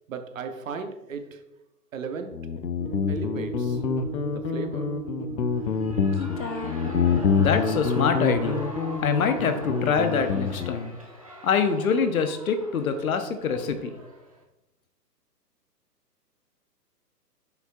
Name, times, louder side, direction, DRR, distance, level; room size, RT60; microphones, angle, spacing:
voice 1, 0.1-1.4 1.9-2.3 3.1-3.8 4.3-4.9, right 5 dB, 50° right, 6 dB, 0.9 m, -35 dB
Guitar, 2.3-10.8, left 6 dB, 85° left, 0.8 m, -27 dB
sound 1, 2.8-10.3, right 4 dB, 75° right, 2.0 m, -36 dB
Shout / Cheering, 5.5-14.4, equal, 25° right, 0.4 m, -43 dB
voice 2, 7.4-8.7 9.0-11.0 11.4-13.9, left 6 dB, 55° left, 8 dB, 0.9 m, -25 dB
7.7 x 5.7 x 2.4 m, 0.96 s
figure-of-eight pair, 135°, 50 cm